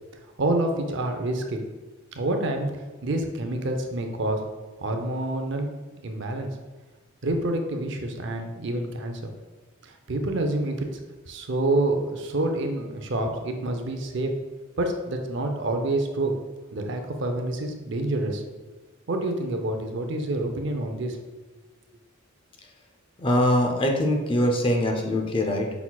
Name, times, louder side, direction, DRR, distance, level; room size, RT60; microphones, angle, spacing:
voice 1, 0.4-1.6 2.1-2.7 3.0-4.4 4.8-5.7 6.0-6.5 7.2-9.2 9.8-10.9 11.3-14.3 14.8-16.4 16.7-18.4 19.1-21.2, right 2 dB, 55° right, 4 dB, 0.5 m, -27 dB
voice 2, 23.2-25.7, left 1 dB, 25° left, 2 dB, 0.5 m, -23 dB
5.6 x 4.1 x 2.3 m, 1.2 s
head